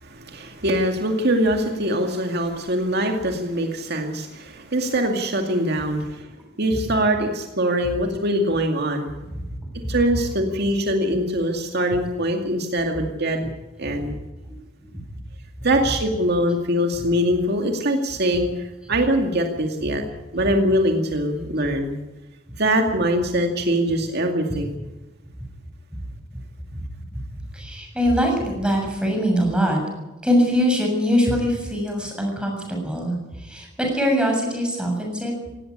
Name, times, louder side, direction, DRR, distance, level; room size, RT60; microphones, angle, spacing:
voice 1, 0.0-6.3 6.6-9.1 9.9-13.5 13.8-14.2 15.6-20.0 20.3-22.0 22.6-24.8, equal, 60° right, 3 dB, 2.2 m, -23 dB
voice 2, 27.5-29.8 30.2-35.3, equal, 5° right, 1 dB, 7.1 m, -22 dB
18.0 x 17.5 x 9.9 m, 1.1 s
head